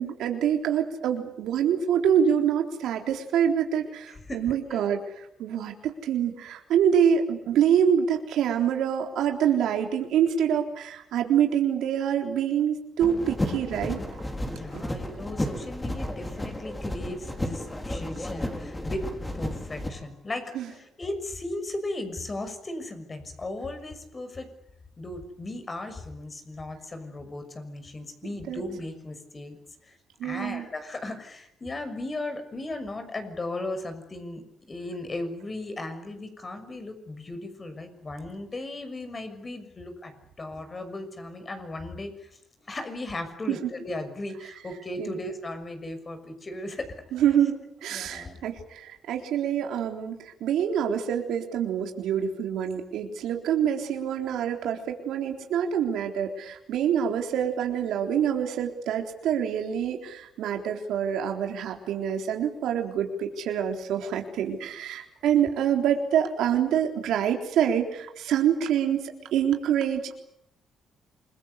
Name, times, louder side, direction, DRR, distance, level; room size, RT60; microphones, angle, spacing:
voice 1, 0.0-5.7 6.0-14.0 14.7-14.8 20.5-20.7 28.5-28.6 30.2-30.7 43.5-43.7 45.0-45.2 47.1-70.2, right 8 dB, 85° right, 3 dB, 3.8 m, -26 dB
voice 2, 4.1-4.9 14.5-19.1 19.3-24.5 25.0-29.6 29.8-30.0 30.2-42.3 42.6-47.0 47.9-48.4, left 2 dB, 30° left, 8 dB, 6.2 m, -36 dB
sound 1, 13.0-19.9, left 1 dB, 15° left, 5.2 m, -33 dB
28.0 x 22.0 x 8.3 m, 0.77 s
cardioid pair, 100°, 0 cm